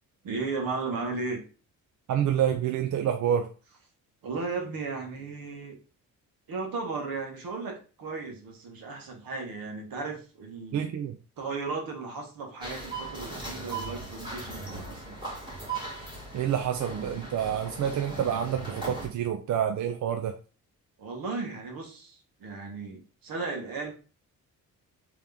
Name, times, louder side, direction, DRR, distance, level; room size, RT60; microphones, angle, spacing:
voice 1, 0.2-1.4 4.2-5.8 6.5-10.9 11.4-15.2 21.0-23.9, right 4 dB, 75° right, 3 dB, 1.3 m, -35 dB
voice 2, 2.1-3.5 10.7-11.2 16.3-20.4, right 9 dB, 55° right, 5 dB, 0.5 m, -28 dB
sound 1, 12.6-19.1, right 3 dB, 10° right, 2.0 m, -38 dB
3.7 x 3.0 x 3.4 m, 0.36 s
wide cardioid pair, 150°, 35 cm